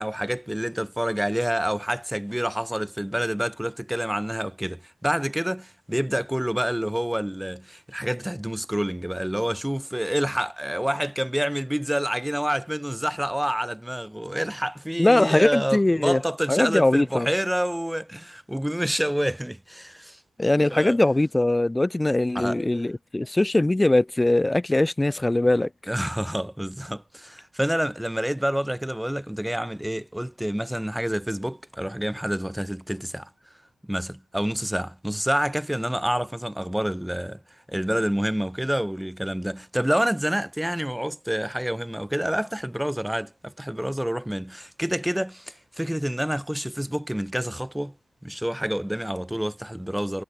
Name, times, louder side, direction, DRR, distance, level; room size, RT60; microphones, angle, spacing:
voice 1, 0.0-20.2 20.7-21.0 22.3-22.6 25.9-33.3 33.9-37.4 37.7-47.9 48.2-50.2, equal, 5° right, 4.2 m, -28 dB
voice 2, 15.0-16.2 16.5-17.3 20.4-25.7, left 2 dB, 20° left, 2.4 m, -21 dB
supercardioid pair, 40°, 0 cm